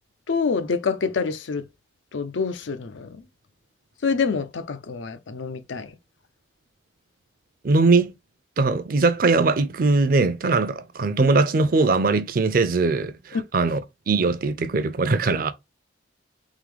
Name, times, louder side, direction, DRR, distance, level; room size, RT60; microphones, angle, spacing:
voice 1, 0.3-1.7 2.1-3.3 4.0-5.9 13.3-13.5, left 5 dB, 85° left, 0.5 m, -26 dB
voice 2, 7.6-8.1 8.6-13.8 14.1-15.5, right 3 dB, 50° right, 0.5 m, -21 dB
3.7 x 3.4 x 3.3 m
head